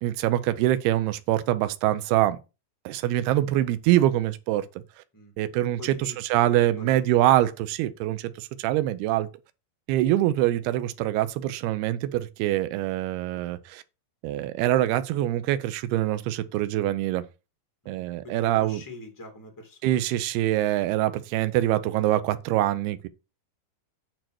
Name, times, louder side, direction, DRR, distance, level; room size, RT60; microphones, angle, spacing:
voice 1, 0.0-2.4 2.9-4.7 5.4-9.3 9.9-13.8 14.2-17.2 17.9-18.8 19.8-23.1, right 14 dB, 80° right, 2.4 m, -24 dB
voice 2, 5.8-7.0 17.8-20.1, left 1 dB, 15° left, 0.6 m, -43 dB
9.0 x 4.6 x 6.0 m
omnidirectional pair, 5.2 m